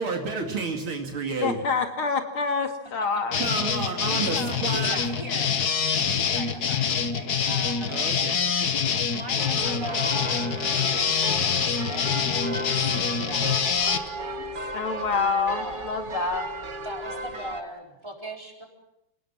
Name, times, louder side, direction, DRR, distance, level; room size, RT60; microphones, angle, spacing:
voice 1, 0.0-1.6 3.3-5.0 7.9-8.5, right 4 dB, 80° right, 2 dB, 3.3 m, -30 dB
voice 2, 1.4-3.4 14.7-16.4, left 5 dB, 85° left, 5 dB, 3.1 m, -27 dB
sound 1, 3.3-14.0, left 6 dB, 55° left, 1.7 m, -25 dB
voice 3, 4.1-7.9 9.1-14.7 15.5-15.9 16.8-18.7, equal, 10° right, 1 dB, 4.6 m, -40 dB
sound 2, 9.4-17.6, right 2 dB, 30° right, 1.0 m, -35 dB
28.5 x 18.5 x 7.3 m, 0.83 s
omnidirectional pair, 2.3 m